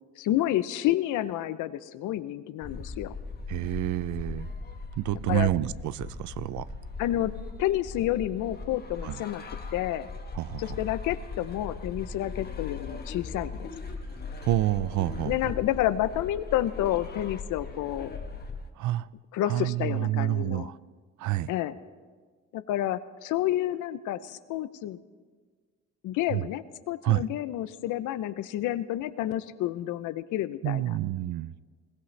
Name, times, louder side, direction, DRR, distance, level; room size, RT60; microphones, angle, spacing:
voice 1, 0.2-3.2 5.3-5.5 7.0-7.3 7.6-9.4 9.7-10.1 10.6-13.7 15.2-18.1 19.3-20.7 21.5-21.8 22.5-25.0 26.0-30.8, left 13 dB, 90° left, 14 dB, 0.6 m, -29 dB
sound 1, 2.6-18.7, left 4 dB, 30° left, 1.3 m, -39 dB
voice 2, 3.5-4.5 5.0-6.7 9.0-9.2 10.4-10.8 14.4-15.5 18.8-19.1 19.5-20.8 21.2-21.5 26.3-26.5 27.0-27.3 30.6-31.5, right 15 dB, 75° right, 18 dB, 0.5 m, -28 dB
22.0 x 16.5 x 3.3 m, 1.5 s
cardioid pair, 90°, 30 cm